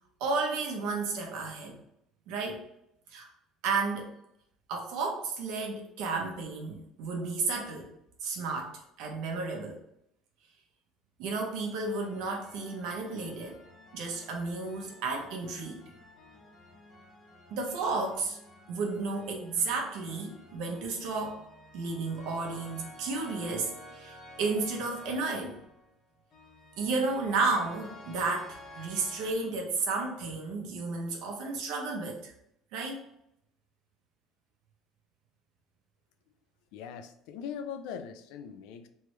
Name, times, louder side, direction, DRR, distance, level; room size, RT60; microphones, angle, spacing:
voice 1, 0.2-1.8 2.3-2.6 3.1-3.3 3.6-4.1 4.7-7.9 8.2-9.8 11.2-13.6 13.9-15.8 17.5-18.4 18.7-21.4 21.7-25.6 26.8-32.3 32.7-33.0, right 3 dB, 70° right, 1 dB, 1.0 m, -32 dB
sound 1, 11.8-29.3, left 1 dB, 35° left, 0.8 m, -52 dB
voice 2, 36.7-38.9, left 7 dB, 80° left, 9 dB, 0.4 m, -41 dB
3.4 x 3.1 x 3.2 m, 0.77 s
cardioid pair, 180°, 0 cm